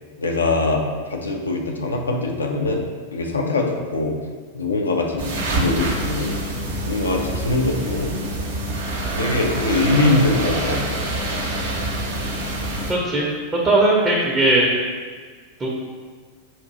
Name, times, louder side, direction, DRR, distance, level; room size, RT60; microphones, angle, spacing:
voice 1, 0.2-0.8 1.1-2.8 3.1-4.1 4.5-6.3 6.8-8.1 9.1-10.8, left 2 dB, 75° left, 1 dB, 0.5 m, -22 dB
sound 1, 5.2-12.9, right 1 dB, 60° right, 0.7 m, -26 dB
voice 2, 12.9-13.3 13.6-14.6 15.6-15.7, right 2 dB, 20° right, -4 dB, 0.7 m, -18 dB
4.3 x 2.6 x 3.9 m, 1.5 s
figure-of-eight pair, 90°, 0 cm